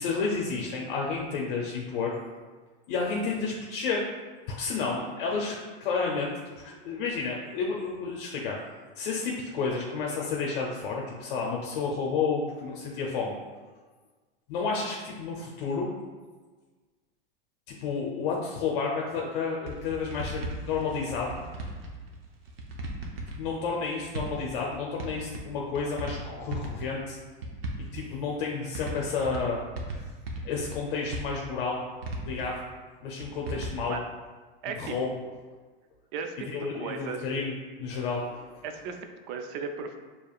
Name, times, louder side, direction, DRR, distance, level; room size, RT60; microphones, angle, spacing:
voice 1, 0.0-2.1 2.9-4.1 4.5-6.3 6.6-8.6 9.0-13.4 14.5-15.9 17.7-21.4 23.4-27.2 27.9-29.6 29.9-30.0 30.4-31.8 32.2-32.6 33.0-34.0 34.8-35.1 36.5-37.5 37.8-38.4, left 4 dB, 65° left, -2 dB, 0.7 m, -31 dB
sound 1, 19.6-22.2 22.5-23.7 24.0-25.1 25.3-26.2 26.4-27.0 27.4-28.3 28.7-29.5 29.8-30.8 31.1-32.5 33.2-33.7, right 2 dB, 90° right, 0.8 m, -36 dB
voice 2, 34.6-35.0 36.1-37.3 38.6-40.0, right 5 dB, 55° right, 6 dB, 0.5 m, -36 dB
4.8 x 2.9 x 2.4 m, 1.4 s
hypercardioid pair, 115°, 29 cm